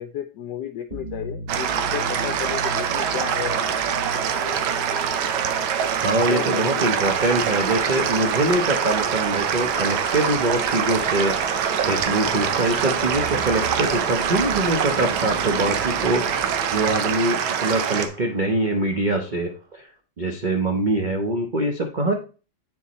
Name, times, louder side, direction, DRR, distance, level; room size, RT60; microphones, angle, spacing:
voice 1, 0.0-3.9 6.3-7.1, left 11 dB, 75° left, 7 dB, 1.1 m, -33 dB
sound 1, 0.9-19.4, right 3 dB, 35° right, 0.8 m, -34 dB
sound 2, 1.5-18.1, right 8 dB, 85° right, 1.5 m, -24 dB
voice 2, 6.0-11.4 11.8-16.4 16.7-19.9 20.2-22.1, right 2 dB, 65° right, 2 dB, 0.4 m, -23 dB
8.0 x 4.7 x 4.1 m, 0.36 s
omnidirectional pair, 2.1 m